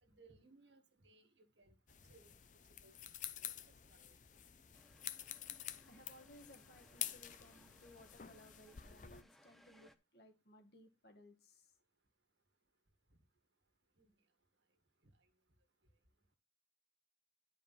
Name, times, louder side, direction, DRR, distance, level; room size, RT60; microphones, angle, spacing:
voice 1, 0.0-1.8 2.1-2.4 2.8-3.0 3.4-4.2 14.0-14.1 15.0-15.1, right 3 dB, 85° right, 1.8 m, -66 dB
sound 1, 1.9-9.2, left 11 dB, 45° left, 0.6 m, -49 dB
sound 2, 4.7-10.0, equal, ahead, 0.7 m, -68 dB
voice 2, 5.5-11.7, left 1 dB, 60° left, 1.8 m, -62 dB
11.0 x 5.1 x 4.1 m
head